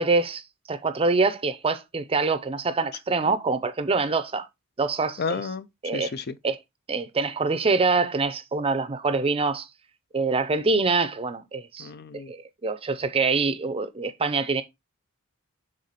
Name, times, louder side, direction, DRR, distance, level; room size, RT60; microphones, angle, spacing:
voice 1, 0.0-4.5 4.8-5.2 5.8-6.1 6.4-6.6 6.9-9.7 10.1-11.9 12.3-14.6, right 3 dB, 25° right, 0.5 m, -25 dB
voice 2, 5.2-6.4 11.8-12.3, left 5 dB, 45° left, 0.5 m, -32 dB
6.5 x 3.8 x 4.0 m
head